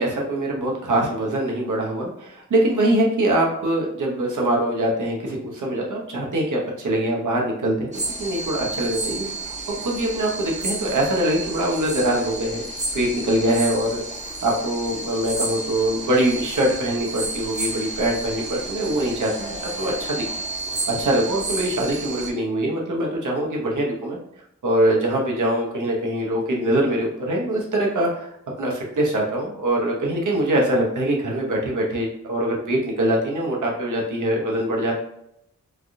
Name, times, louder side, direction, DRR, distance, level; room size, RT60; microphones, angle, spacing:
voice 1, 0.0-7.9 8.2-9.3 9.8-12.6 12.9-14.0 14.4-20.2 20.9-24.2 24.6-28.3 28.6-35.0, right 1 dB, 85° right, -1 dB, 0.8 m, -23 dB
sound 1, 7.9-22.3, right 2 dB, 25° right, 0.7 m, -31 dB
3.3 x 2.3 x 2.6 m, 0.77 s
cardioid pair, 55°, 30 cm